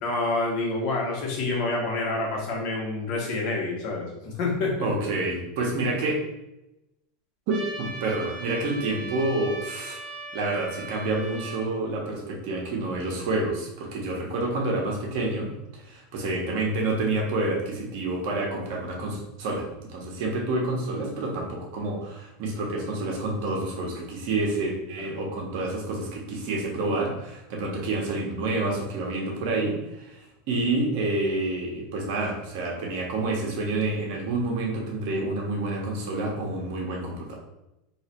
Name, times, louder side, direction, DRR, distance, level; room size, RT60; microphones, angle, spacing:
voice 1, 0.0-4.7 25.0-25.1, left 2 dB, 55° left, -2 dB, 1.5 m, -28 dB
voice 2, 4.8-6.2 7.5-10.0 10.3-37.3, right 2 dB, 65° right, -1 dB, 1.2 m, -28 dB
Trumpet, 7.5-11.7, right 2 dB, 35° right, 1.1 m, -38 dB
3.1 x 3.0 x 4.5 m, 0.94 s
supercardioid pair, 125°, 0 cm